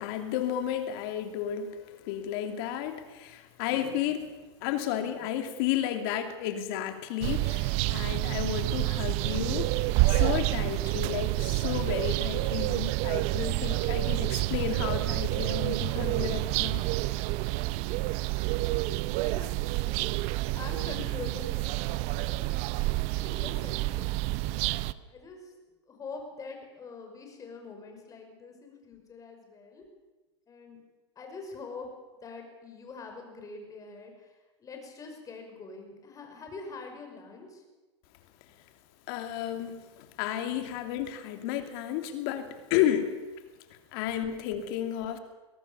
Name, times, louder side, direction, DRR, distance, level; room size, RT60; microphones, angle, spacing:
voice 1, 0.0-4.3 4.6-9.7 10.1-16.8 39.1-43.1 43.7-45.2, left 10 dB, 55° left, 7 dB, 2.9 m, -32 dB
sound 1, 7.2-24.9, right 19 dB, 45° right, 0.7 m, -28 dB
voice 2, 18.9-20.0 20.5-22.5 23.1-25.5 25.9-29.9 30.5-30.8 31.2-31.9 32.1-37.6, left 4 dB, 20° left, 4 dB, 5.7 m, -45 dB
22.5 x 18.0 x 7.1 m, 1.2 s
hypercardioid pair, 125°, 15 cm